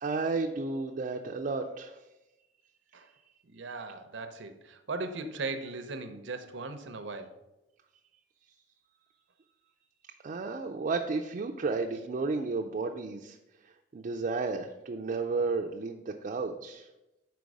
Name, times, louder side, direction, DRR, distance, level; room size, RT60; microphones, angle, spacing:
voice 1, 0.0-2.0 10.2-13.4 13.9-16.9, right 3 dB, 45° right, 2 dB, 0.4 m, -32 dB
voice 2, 3.4-7.4, right 3 dB, 90° right, 7 dB, 0.6 m, -38 dB
5.2 x 4.6 x 4.7 m, 0.97 s
head